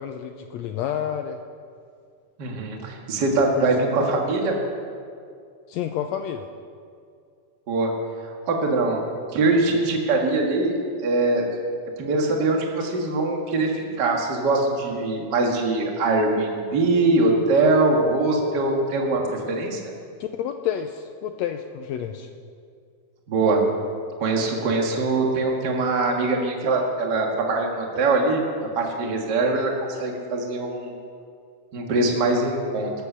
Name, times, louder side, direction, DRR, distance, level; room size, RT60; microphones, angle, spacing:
voice 1, 0.0-1.4 3.6-3.7 4.0-4.1 5.7-6.5 20.2-22.3, left 9 dB, 80° left, 7 dB, 1.6 m, -30 dB
voice 2, 2.4-4.6 7.7-7.9 8.2-9.0 9.3-11.5 12.0-19.8 23.3-23.6 24.2-28.4 28.7-29.7 30.0-30.9 31.7-32.9, right 3 dB, 40° right, 1 dB, 1.9 m, -22 dB
19.5 x 8.2 x 6.8 m, 2.3 s
omnidirectional pair, 3.6 m